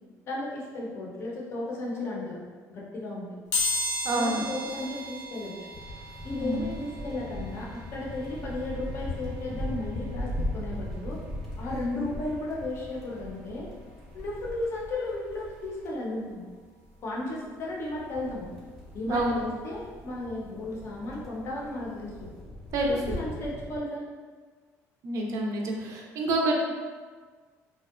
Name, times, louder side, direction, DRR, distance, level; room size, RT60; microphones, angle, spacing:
voice 1, 0.3-2.4 2.7-3.3 4.1-5.5 6.2-11.2 11.6-13.7 14.1-16.5 17.0-18.5 18.9-22.3 22.9-24.0, left 2 dB, 45° left, -3 dB, 0.5 m, -34 dB
sound 1, 3.5-14.2 14.7-14.8 15.9-16.0 16.3-18.4 18.7-21.4 21.7-21.9 22.2-22.3, left 2 dB, 85° left, 0.7 m, -37 dB
voice 2, 4.0-4.4 6.3-6.6 19.1-19.3 22.7-23.2 25.0-26.6, right 2 dB, 60° right, 0 dB, 0.4 m, -27 dB
sound 2, 5.7-15.9 17.6-23.8, left 1 dB, ahead, 0.5 m, -39 dB
2.6 x 2.1 x 2.3 m, 1.5 s
cardioid pair, 145°, 6 cm